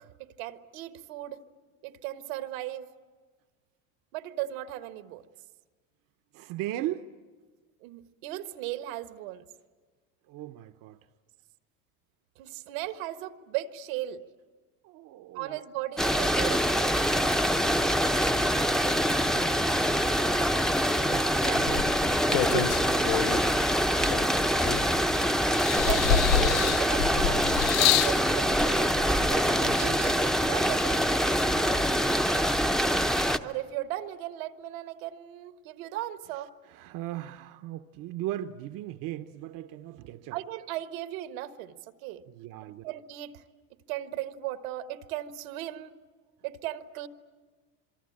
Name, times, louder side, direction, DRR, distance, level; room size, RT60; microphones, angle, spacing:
voice 1, 0.0-1.4 1.8-2.9 4.1-5.2 7.8-9.5 12.4-14.2 15.3-17.0 25.8-30.2 30.4-31.2 33.4-36.5 40.3-41.8 42.0-42.2 42.7-43.4 43.9-45.9 46.4-47.1, right 14 dB, 80° right, 1.5 m, -37 dB
voice 2, 6.3-7.1 10.3-11.0 14.8-15.6 20.9-21.9 22.3-23.4 27.8-29.0 29.2-30.2 36.7-40.4 42.3-42.8, right 13 dB, 50° right, 0.9 m, -38 dB
sound 1, 16.0-33.4, equal, ahead, 0.7 m, -25 dB
sound 2, 21.7-23.5 24.1-25.1 25.6-28.2 29.1-29.2, left 12 dB, 90° left, 0.8 m, -27 dB
26.5 x 23.5 x 8.7 m
supercardioid pair, 120°, 41 cm